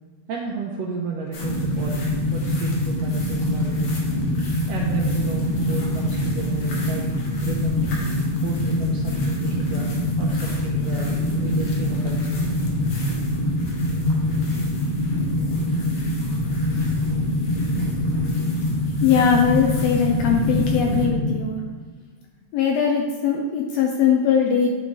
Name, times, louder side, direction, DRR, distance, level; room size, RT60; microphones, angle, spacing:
voice 1, 0.3-2.0 2.3-3.9 4.7-7.1 7.4-7.8 8.4-12.5 16.7-16.9 17.8-17.9, right 5 dB, 80° right, -1 dB, 1.5 m, -32 dB
sound 1, 1.3-21.1, left 2 dB, 65° left, 2.0 m, -43 dB
sound 2, 1.4-21.3, left 1 dB, 15° left, 0.5 m, -24 dB
voice 2, 19.0-21.6 22.5-24.7, left 7 dB, 80° left, 1 dB, 1.5 m, -20 dB
8.8 x 3.0 x 3.7 m, 1.4 s
omnidirectional pair, 3.4 m